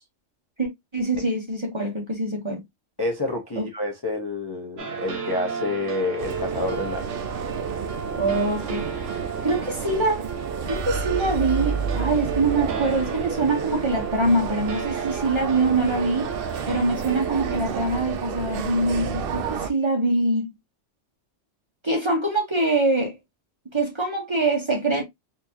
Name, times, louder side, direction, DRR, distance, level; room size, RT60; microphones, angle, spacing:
voice 1, 0.6-2.6 3.6-3.7 8.1-10.2 10.7-16.3 16.7-20.5 21.8-23.2 23.7-25.0, right 2 dB, 25° right, 0.9 m, -24 dB
voice 2, 3.0-7.3, left 2 dB, 25° left, 0.6 m, -28 dB
sound 1, 4.8-17.6, right 5 dB, 85° right, 1.2 m, -34 dB
sound 2, 6.2-19.7, right 6 dB, 60° right, 0.7 m, -30 dB
4.3 x 2.6 x 2.6 m
omnidirectional pair, 1.3 m